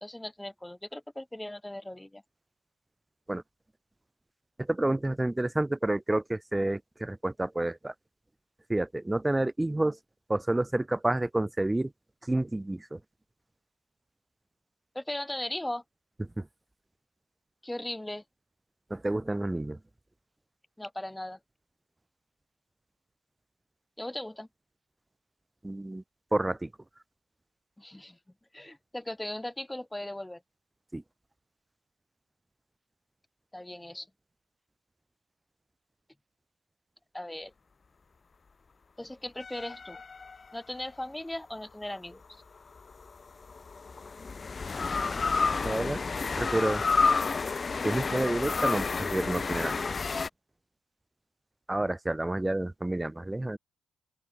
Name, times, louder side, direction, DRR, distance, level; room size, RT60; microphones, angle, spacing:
voice 1, 0.0-2.2 14.9-15.8 17.6-18.2 20.8-21.4 24.0-24.5 27.8-28.2 28.5-30.4 33.5-34.1 37.1-37.5 39.0-40.0 40.5-42.2, left 1 dB, 10° left, 1.1 m, -38 dB
voice 2, 4.6-7.9 8.7-10.0 10.3-11.9 12.3-13.0 16.4-16.5 18.9-19.8 25.6-26.0 26.3-26.7 30.9-31.0 45.6-46.0 46.4-46.8 47.8-49.8 51.7-53.6, right 1 dB, 10° right, 0.5 m, -29 dB
sound 1, 39.4-40.9 42.8-50.3, left 4 dB, 35° left, 0.8 m, -30 dB
open air
cardioid pair, 90°, 0 cm